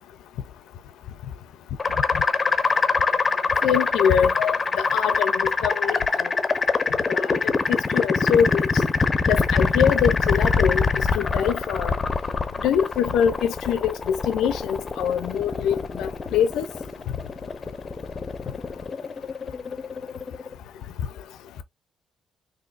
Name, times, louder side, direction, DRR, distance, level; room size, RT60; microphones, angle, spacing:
sound 1, 1.8-20.5, left 4 dB, 35° left, 0.5 m, -24 dB
voice 1, 3.6-6.0 7.1-7.4 7.7-8.7 9.3-10.9 11.1-11.9 12.6-16.6, left 8 dB, 85° left, 0.4 m, -23 dB
4.0 x 2.6 x 2.4 m
cardioid pair, 90°, 0 cm